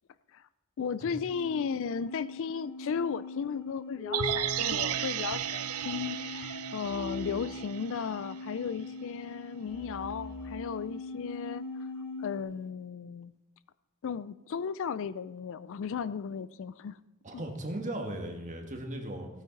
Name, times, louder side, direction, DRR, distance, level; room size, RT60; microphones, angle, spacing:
voice 1, 0.8-11.6 12.2-13.3 14.0-17.0 17.3-17.4, left 6 dB, 60° left, 17 dB, 0.4 m, -35 dB
sound 1, 1.2-12.4, left 3 dB, 10° left, 3.5 m, -41 dB
sound 2, 4.1-8.3 8.6-8.7, right 10 dB, 75° right, 0.5 m, -34 dB
voice 2, 17.2-19.3, right 1 dB, 35° right, 3 dB, 1.5 m, -37 dB
15.5 x 9.1 x 4.0 m, 0.99 s
head